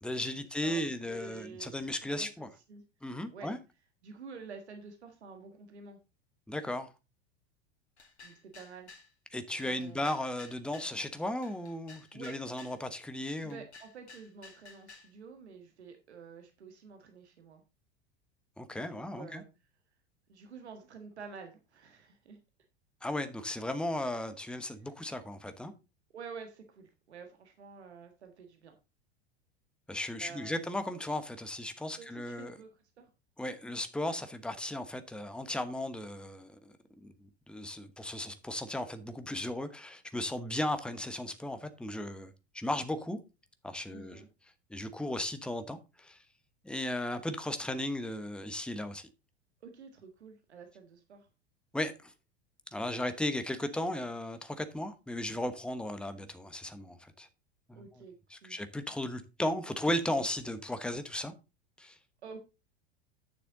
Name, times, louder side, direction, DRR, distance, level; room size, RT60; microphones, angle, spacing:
voice 1, 0.0-2.5 3.0-3.6 6.5-6.9 9.3-13.6 18.6-19.4 23.0-25.7 29.9-32.6 33.4-42.3 42.5-43.2 43.6-44.2 44.7-46.2 46.6-49.1 51.7-52.1 52.7-57.3 57.7-57.9 58.3-61.3 61.8-62.0, left 1 dB, 5° left, 1.0 m, -36 dB
voice 2, 0.6-2.8 3.3-3.5 4.0-6.0 8.2-8.9 9.6-10.1 12.1-12.4 13.4-17.6 18.8-19.5 20.3-22.4 24.6-24.9 26.1-28.7 30.2-30.8 31.9-33.1 43.9-44.3 49.6-51.3 57.7-58.1 58.4-58.6 62.2-62.4, right 5 dB, 80° right, 1.6 m, -49 dB
sound 1, 8.0-9.1 9.6-10.9 11.4-12.8 13.3-15.1, left 4 dB, 90° left, 2.0 m, -54 dB
9.5 x 6.8 x 3.9 m
hypercardioid pair, 90°, 33 cm